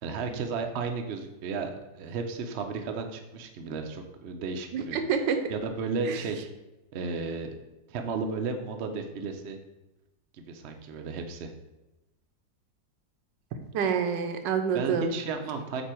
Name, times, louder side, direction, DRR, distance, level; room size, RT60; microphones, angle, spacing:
voice 1, 0.0-5.0 5.5-6.5 6.9-7.5 7.9-9.6 10.5-11.5 14.7-15.8, right 4 dB, 65° right, 5 dB, 0.6 m, -33 dB
voice 2, 4.7-5.4 6.1-6.2 13.7-15.1, right 7 dB, 85° right, 6 dB, 1.3 m, -27 dB
8.1 x 2.7 x 4.4 m, 1.0 s
omnidirectional pair, 1.9 m